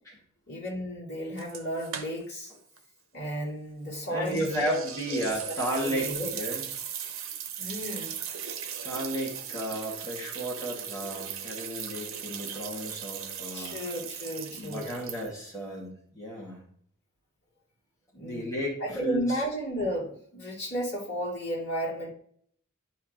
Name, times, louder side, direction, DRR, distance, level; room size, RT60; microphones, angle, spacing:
voice 1, 0.5-2.5 3.1-5.2 5.5-6.3 7.6-8.1 13.5-15.0 18.1-18.5 18.8-22.1, equal, 50° left, -5 dB, 3.1 m, -33 dB
sound 1, 1.4-2.5 2.8-2.9 4.2-15.5, right 8 dB, 60° right, 0.9 m, -38 dB
voice 2, 4.1-6.6 8.8-13.8 14.5-16.6 18.2-19.4, equal, 15° left, -4 dB, 2.2 m, -33 dB
11.0 x 4.7 x 3.1 m, 0.63 s
head